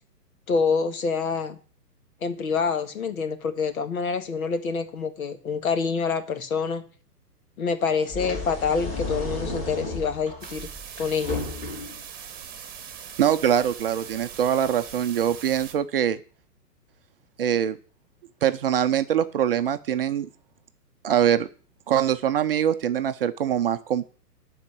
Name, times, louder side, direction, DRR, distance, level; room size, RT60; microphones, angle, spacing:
voice 1, 0.5-1.6 2.2-6.8 7.6-10.7 11.0-11.4, left 5 dB, 60° left, 8 dB, 1.8 m, -26 dB
sound 1, 8.0-12.0, left 2 dB, 15° left, 6.0 m, -33 dB
sound 2, 10.4-15.7, right 8 dB, 20° right, 1.8 m, -41 dB
voice 2, 13.2-16.2 17.4-17.8 18.4-20.3 21.0-21.5 21.9-24.1, right 9 dB, 35° right, 9 dB, 0.7 m, -23 dB
12.0 x 4.5 x 8.3 m, 0.40 s
figure-of-eight pair, 125°, 48 cm